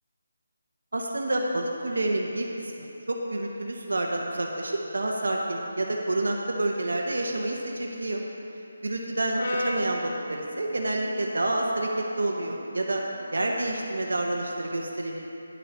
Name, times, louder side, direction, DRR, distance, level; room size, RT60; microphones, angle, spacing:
voice 1, 0.9-8.2 8.8-13.0 13.3-15.3, right 1 dB, 90° right, 0 dB, 1.1 m, -28 dB
Brass instrument, 9.3-13.6, equal, 40° left, 0.9 m, -37 dB
10.5 x 7.7 x 4.0 m, 2.9 s
hypercardioid pair, 180°, 0 cm